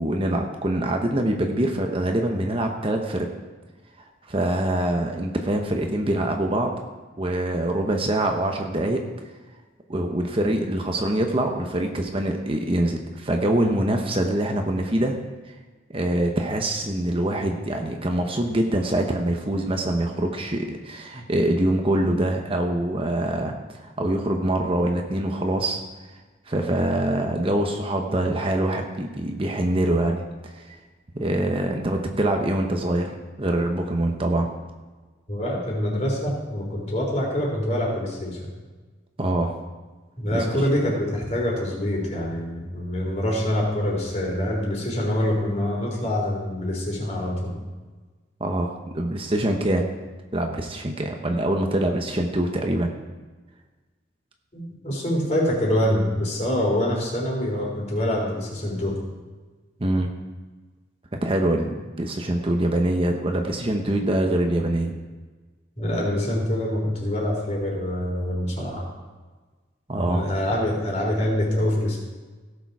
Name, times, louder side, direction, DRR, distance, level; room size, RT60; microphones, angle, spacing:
voice 1, 0.0-3.3 4.3-6.7 7.2-9.0 9.9-15.2 15.9-23.5 23.8-25.8 26.5-30.8 31.1-34.5 39.2-39.6 40.3-40.4 48.4-49.8 50.3-52.9 59.8-60.1 61.1-64.9 69.9-70.3, right 1 dB, 30° right, 3 dB, 0.9 m, -24 dB
voice 2, 35.3-38.5 40.2-47.5 54.5-59.0 65.8-68.8 70.0-72.0, left 1 dB, 40° left, -2 dB, 3.8 m, -25 dB
17.0 x 6.9 x 4.8 m, 1.3 s
head